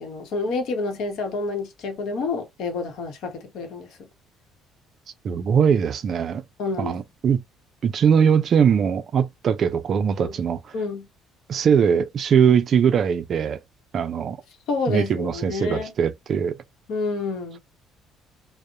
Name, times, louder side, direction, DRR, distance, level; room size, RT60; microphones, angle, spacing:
voice 1, 0.0-4.0 6.6-6.9 10.2-10.3 10.7-11.1 14.7-15.9 16.9-17.6, left 3 dB, 65° left, 0.9 m, -28 dB
voice 2, 5.2-6.4 6.8-7.4 7.8-10.7 11.5-13.6 13.9-14.4 14.9-16.6, right 7 dB, 45° right, 0.3 m, -21 dB
2.7 x 2.0 x 2.4 m
cardioid pair, 120°, 0 cm